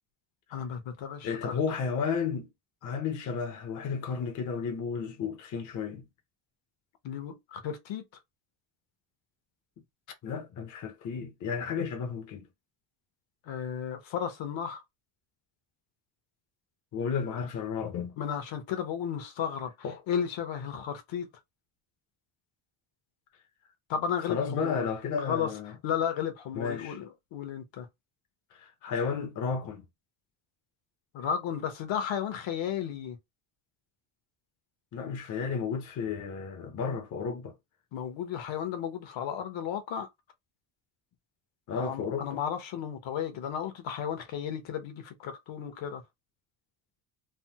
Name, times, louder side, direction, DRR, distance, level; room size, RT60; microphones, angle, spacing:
voice 1, 0.5-1.6 7.0-8.0 13.5-14.8 18.2-19.7 20.1-21.3 23.9-24.9 25.2-25.5 25.8-27.9 31.1-33.2 37.9-40.1 41.8-46.0, left 8 dB, 65° left, 0.9 m, -33 dB
voice 2, 1.2-2.5 2.8-6.1 10.2-12.5 16.9-18.2 19.8-20.0 24.3-25.7 26.5-27.0 28.6-29.8 34.9-37.5 41.7-42.4, left 6 dB, 40° left, 0.6 m, -33 dB
3.4 x 2.0 x 2.7 m
cardioid pair, 155°, 49 cm